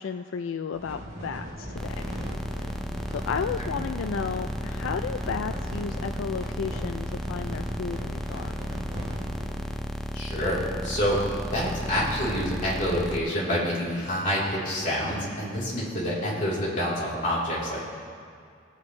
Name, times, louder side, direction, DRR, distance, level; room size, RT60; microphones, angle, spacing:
voice 1, 0.0-2.0 3.1-8.5, left 6 dB, 85° left, 8 dB, 0.4 m, -33 dB
sound 1, 0.7-9.8, equal, 40° right, 3.1 m, -38 dB
sound 2, 1.7-13.2, equal, ahead, 0.4 m, -34 dB
voice 2, 10.1-11.2 11.5-17.8, equal, 40° left, -8 dB, 3.5 m, -27 dB
20.5 x 8.8 x 3.2 m, 2.3 s
head